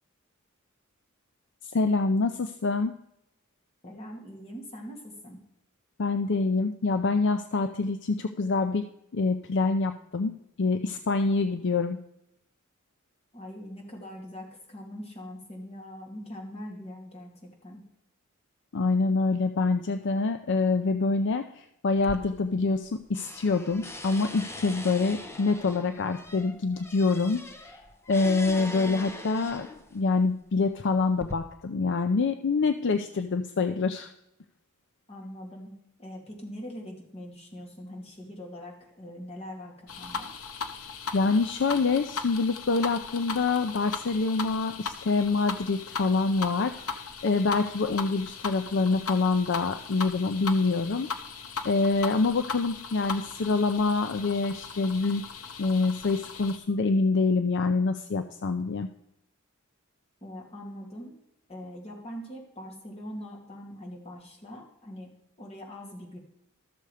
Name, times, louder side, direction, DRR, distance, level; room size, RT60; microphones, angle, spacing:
voice 1, 1.7-3.0 6.0-8.9 9.1-12.0 18.7-27.8 28.1-29.7 29.9-34.1 41.1-51.1 51.6-55.2 55.6-58.9, left 3 dB, 55° left, 8 dB, 0.5 m, -26 dB
voice 2, 3.8-5.4 13.3-17.8 35.1-35.7 36.0-40.3 60.2-61.1 61.5-65.1 65.4-66.2, equal, 30° left, 0 dB, 2.4 m, -42 dB
sound 1, 22.0-22.9 23.1-30.0 30.7-31.3, left 1 dB, 10° left, 0.8 m, -42 dB
sound 2, 39.9-56.6, left 5 dB, 80° left, 0.9 m, -38 dB
13.0 x 6.7 x 4.9 m, 0.81 s
head